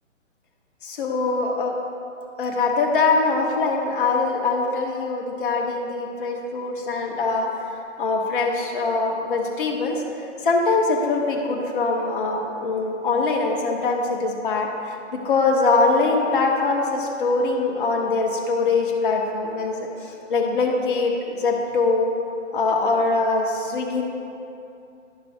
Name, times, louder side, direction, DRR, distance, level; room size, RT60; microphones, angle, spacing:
voice 1, 0.8-1.8 2.4-7.5 8.0-10.0 10.4-22.1 22.5-24.0, left 3 dB, 45° left, 0 dB, 1.1 m, -23 dB
11.5 x 6.1 x 2.6 m, 2.7 s
figure-of-eight pair, 140°, 37 cm